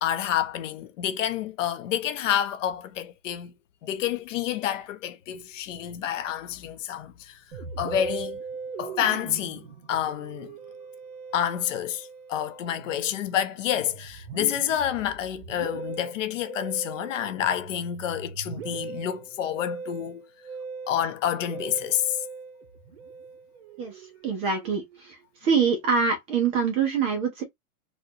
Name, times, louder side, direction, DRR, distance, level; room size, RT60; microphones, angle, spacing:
voice 1, 0.0-3.5 3.8-7.4 7.8-8.4 8.8-10.5 11.3-20.2 20.9-22.2, left 10 dB, 60° left, 0.8 m, -28 dB
Musical instrument, 7.5-25.1, right 5 dB, 50° right, 1.2 m, -40 dB
voice 2, 24.2-24.8 25.4-27.4, right 6 dB, 15° right, 0.4 m, -24 dB
4.1 x 2.3 x 2.8 m
hypercardioid pair, 150°, 42 cm